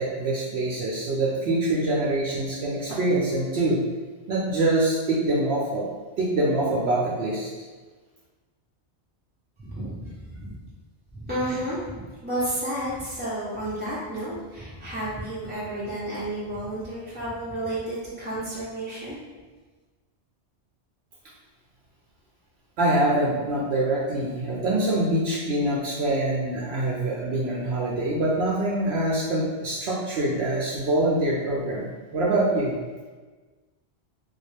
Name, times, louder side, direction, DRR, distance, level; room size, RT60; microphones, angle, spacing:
voice 1, 0.0-3.8 4.3-5.9 6.2-7.5 22.8-32.8, right 1 dB, 70° right, -5 dB, 0.8 m, -24 dB
voice 2, 9.6-10.1 10.4-10.5 11.1-19.2, right 1 dB, 10° right, -9 dB, 0.6 m, -31 dB
3.5 x 2.3 x 3.2 m, 1.3 s
omnidirectional pair, 1.2 m